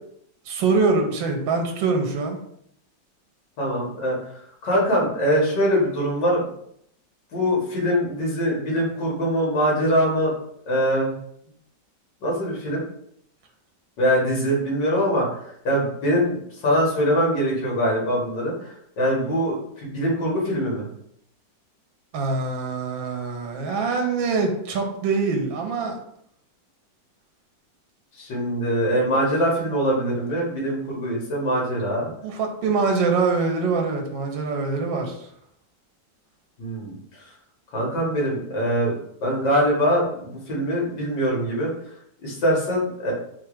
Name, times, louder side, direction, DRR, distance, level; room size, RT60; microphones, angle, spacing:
voice 1, 0.5-2.4 22.1-26.0 32.2-35.2, right 4 dB, 80° right, 2 dB, 1.5 m, -24 dB
voice 2, 3.6-4.2 4.6-6.4 7.3-10.3 10.7-11.1 12.2-12.8 14.0-16.4 16.6-20.9 28.2-32.1 36.6-36.9 37.7-38.9 39.2-41.7 42.2-43.1, equal, 65° left, -3 dB, 2.2 m, -23 dB
4.4 x 2.4 x 4.7 m, 0.69 s
omnidirectional pair, 2.1 m